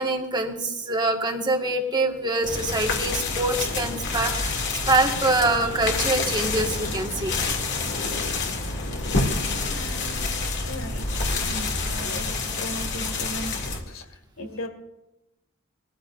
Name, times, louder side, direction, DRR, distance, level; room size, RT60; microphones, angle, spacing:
voice 1, 0.0-7.6, right 2 dB, 20° right, 2 dB, 1.7 m, -25 dB
sound 1, 2.4-13.8, left 3 dB, 60° left, 2.6 m, -28 dB
voice 2, 8.8-10.3 10.7-14.0 14.4-14.7, equal, 75° left, 4 dB, 2.2 m, -38 dB
22.5 x 14.5 x 2.6 m, 0.89 s
head